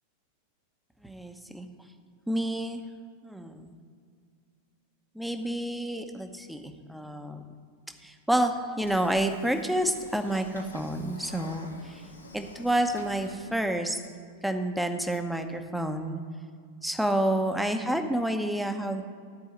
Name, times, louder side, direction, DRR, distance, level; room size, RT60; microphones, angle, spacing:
voice 1, 1.0-1.7 2.3-2.8 3.2-3.7 5.1-7.4 8.0-12.0 12.3-14.0 14.4-16.2 16.8-19.1, right 1 dB, ahead, 6 dB, 0.9 m, -29 dB
Train / Sliding door, 8.8-13.8, left 2 dB, 80° left, 1.1 m, -48 dB
13.5 x 4.7 x 7.8 m, 2.1 s
figure-of-eight pair, 90°, 0 cm